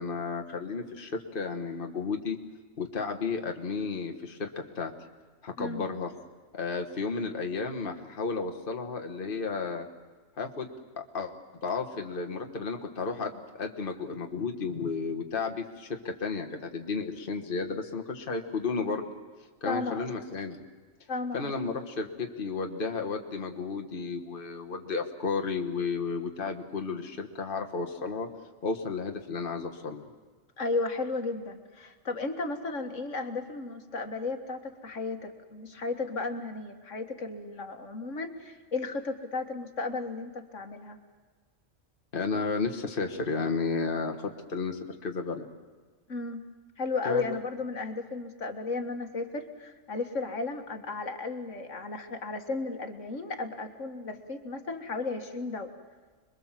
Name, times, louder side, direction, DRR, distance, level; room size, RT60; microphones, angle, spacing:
voice 1, 0.0-2.4 2.8-4.5 4.7-4.9 5.4-6.1 6.5-9.9 10.4-10.7 11.0-11.3 11.6-19.1 19.6-20.6 21.3-28.3 28.6-30.0 42.1-45.5 47.0-47.4, left 4 dB, 45° left, 4 dB, 1.6 m, -33 dB
voice 2, 19.7-20.1 21.1-21.5 30.6-41.0 46.1-46.4 46.8-55.7, left 3 dB, 70° left, 6 dB, 2.0 m, -34 dB
26.5 x 22.0 x 7.5 m, 1.4 s
omnidirectional pair, 1.3 m